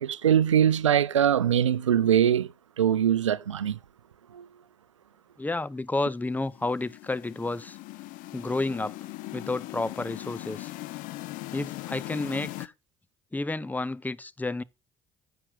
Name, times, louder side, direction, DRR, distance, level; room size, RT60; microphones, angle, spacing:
voice 1, 0.0-2.5 2.8-3.8 4.3-4.5, right 9 dB, 90° right, 0.4 m, -22 dB
voice 2, 5.4-7.8 8.3-9.0 9.3-10.7 11.5-12.7 13.3-14.6, left 2 dB, 10° left, 0.6 m, -31 dB
sound 1, 6.2-12.7, left 19 dB, 60° left, 0.7 m, -40 dB
9.9 x 7.9 x 4.0 m
hypercardioid pair, 55°, 15 cm